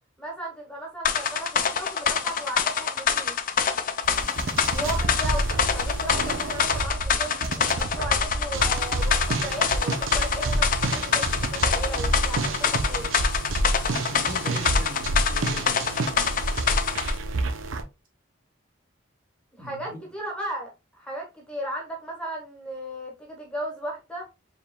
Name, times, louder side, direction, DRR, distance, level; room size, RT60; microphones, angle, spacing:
voice 1, 0.2-3.4 4.7-5.4 5.7-13.1 19.6-24.3, right 1 dB, 5° left, 1.1 m, -36 dB
sound 1, 1.0-17.2, left 7 dB, 45° left, 0.4 m, -26 dB
sound 2, 4.0-17.8, right 2 dB, 90° right, 0.6 m, -28 dB
voice 2, 14.1-16.5 19.6-20.0, equal, 45° right, 1.5 m, -41 dB
4.7 x 3.5 x 2.2 m
head